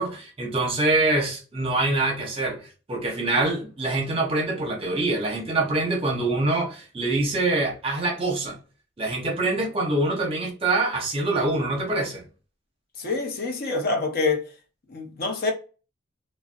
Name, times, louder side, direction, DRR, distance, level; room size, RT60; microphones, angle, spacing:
voice 1, 0.0-8.6 9.0-12.2, right 2 dB, 30° right, 0.6 m, -25 dB
voice 2, 13.0-14.4 14.9-15.5, left 3 dB, 50° left, 0.5 m, -26 dB
2.5 x 2.0 x 2.4 m
head